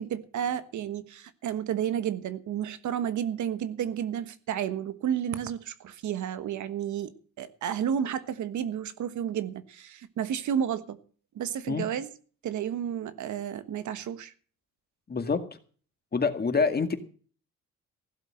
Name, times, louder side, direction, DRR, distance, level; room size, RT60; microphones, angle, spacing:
voice 1, 0.0-7.1 7.4-11.0 11.3-12.1 12.4-14.3, right 9 dB, 75° right, 1.4 m, -31 dB
voice 2, 15.1-15.5 16.1-17.0, left 4 dB, 30° left, 2.1 m, -26 dB
16.0 x 7.7 x 7.7 m
cardioid pair, 90°, 30 cm